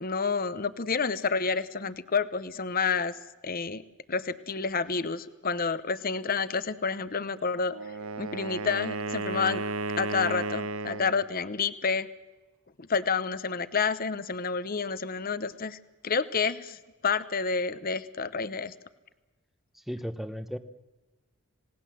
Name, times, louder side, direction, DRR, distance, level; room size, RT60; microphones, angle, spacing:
voice 1, 0.0-3.1 3.4-3.8 4.1-7.7 8.2-9.6 10.0-12.1 12.8-16.8 17.0-18.7, left 5 dB, 40° left, 15 dB, 0.9 m, -29 dB
Wind instrument woodwind instrument, 7.6-11.2, right 2 dB, 70° right, 1.0 m, -33 dB
voice 2, 19.7-20.6, equal, ahead, 10 dB, 0.9 m, -35 dB
27.0 x 19.0 x 7.5 m, 1.1 s
head